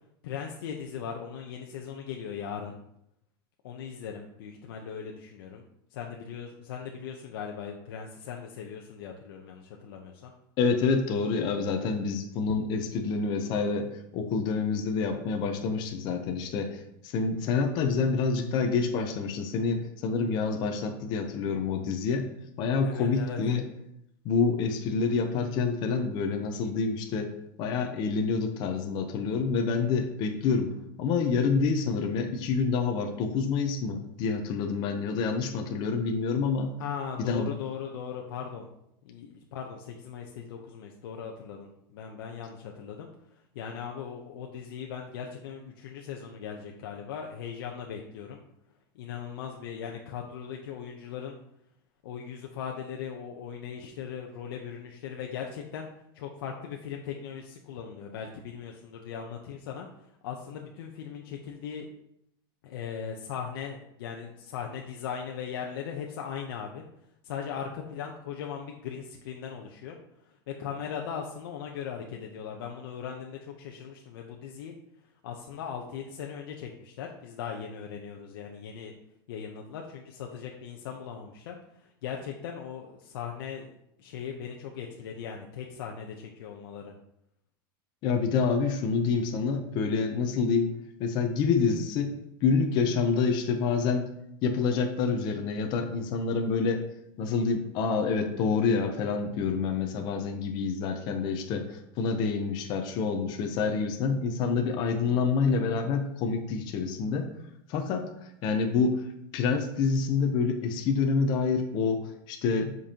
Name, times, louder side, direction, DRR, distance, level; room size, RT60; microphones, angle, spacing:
voice 1, 0.2-2.8 3.6-5.6 5.9-10.3 22.8-23.4 36.8-38.7 39.0-48.4 48.9-51.4 52.0-55.9 56.1-61.9 62.6-74.7 75.2-78.9 79.3-83.7 84.0-86.9, left 7 dB, 70° left, 1 dB, 0.8 m, -39 dB
voice 2, 10.6-22.3 22.6-23.6 24.2-27.3 27.6-30.7 31.0-36.7 37.2-37.5 88.0-90.7 91.0-92.2 92.4-94.1 94.4-96.8 97.2-107.3 107.7-108.0 108.4-109.0 109.3-112.8, left 5 dB, 35° left, 4 dB, 0.8 m, -27 dB
7.6 x 5.3 x 2.9 m, 0.78 s
supercardioid pair, 160°, 12 cm